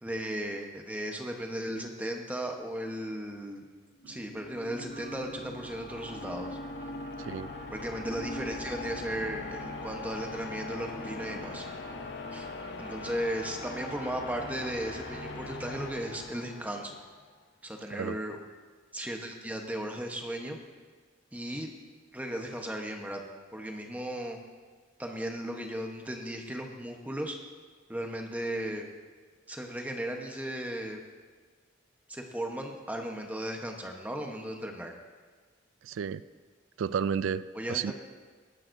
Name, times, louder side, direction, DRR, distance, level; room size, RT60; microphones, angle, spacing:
voice 1, 0.0-3.6 4.1-6.6 7.7-11.7 12.3-12.5 12.8-17.0 17.6-18.4 18.9-20.6 21.3-21.7 22.1-23.2 23.5-24.4 25.0-27.4 27.9-28.9 29.5-31.0 32.1-34.9 37.5-37.9, right 1 dB, 10° right, 2 dB, 1.0 m, -36 dB
sound 1, 4.0-17.1, left 3 dB, 60° left, 0.9 m, -41 dB
Wind instrument woodwind instrument, 4.8-15.4, right 3 dB, 40° right, 1.1 m, -50 dB
voice 2, 7.2-7.5 17.9-18.2 35.8-36.2 36.8-37.4 37.7-37.9, right 7 dB, 80° right, 16 dB, 0.3 m, -32 dB
18.5 x 11.0 x 2.7 m, 1.5 s
head